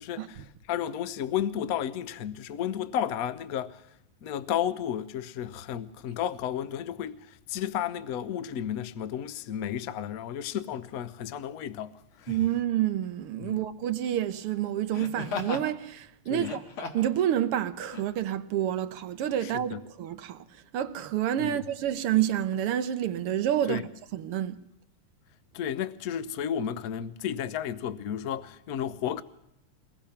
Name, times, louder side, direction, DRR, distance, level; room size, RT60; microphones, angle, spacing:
voice 1, 0.0-3.8 4.2-11.9 13.4-13.6 16.3-16.5 19.4-19.8 21.4-21.6 23.7-23.9 25.5-29.2, left 9 dB, 55° left, 1.0 m, -32 dB
Laughter, 10.7-10.9 12.2-12.6 14.9-15.7 16.3-17.1 17.9-18.0, left 5 dB, 75° left, 2.6 m, -36 dB
voice 2, 12.3-16.6 16.9-20.5 20.7-24.6, right 11 dB, 90° right, 1.9 m, -28 dB
23.0 x 19.5 x 5.9 m
omnidirectional pair, 2.4 m